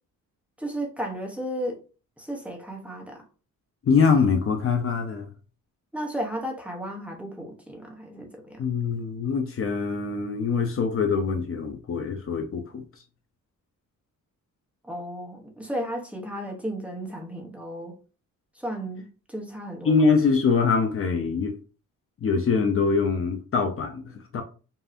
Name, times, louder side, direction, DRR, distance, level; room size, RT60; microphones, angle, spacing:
voice 1, 0.6-1.8 2.2-3.2 5.9-8.7 14.8-17.9 18.5-20.1, equal, 5° right, 0.8 m, -34 dB
voice 2, 3.8-5.3 8.6-12.8 19.8-21.5 22.2-24.4, left 5 dB, 40° left, 0.6 m, -23 dB
5.5 x 2.7 x 2.5 m
wide cardioid pair, 170°, 33 cm